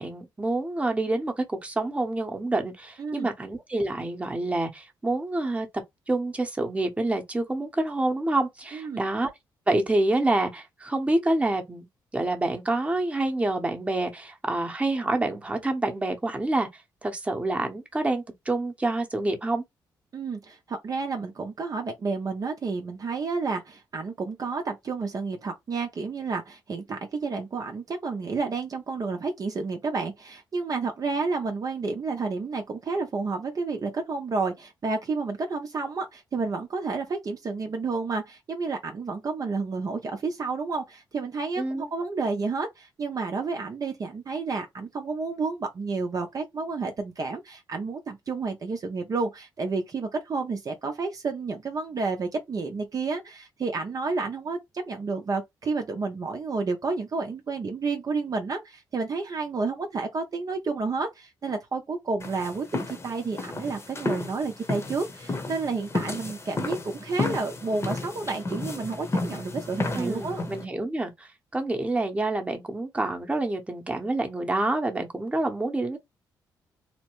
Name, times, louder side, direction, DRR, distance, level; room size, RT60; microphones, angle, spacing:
voice 1, 0.0-5.7 6.1-9.3 9.7-11.9 12.1-16.7 17.0-19.6 41.6-41.9 69.9-76.0, right 2 dB, 15° right, 0.9 m, -27 dB
voice 2, 3.0-3.3 8.7-9.1 20.1-70.4, right 4 dB, 45° right, 0.7 m, -30 dB
sound 1, 62.2-70.6, left 2 dB, 30° left, 0.9 m, -32 dB
2.9 x 2.1 x 3.0 m
cardioid pair, 65°, 8 cm